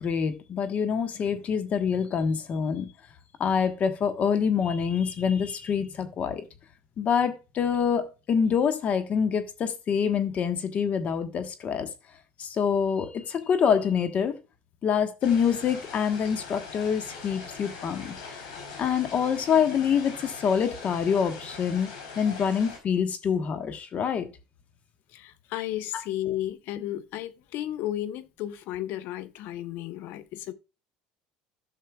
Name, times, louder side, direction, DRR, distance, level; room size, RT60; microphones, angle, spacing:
voice 1, 0.0-2.9 3.4-6.4 7.0-11.9 12.4-14.4 14.8-18.4 18.8-21.9 22.2-24.3, left 7 dB, 45° left, 1.2 m, -26 dB
sound 1, 15.2-22.8, left 5 dB, 90° left, 3.9 m, -42 dB
voice 2, 25.1-30.5, left 13 dB, 65° left, 0.8 m, -33 dB
11.5 x 6.4 x 2.3 m
supercardioid pair, 95°, 3 cm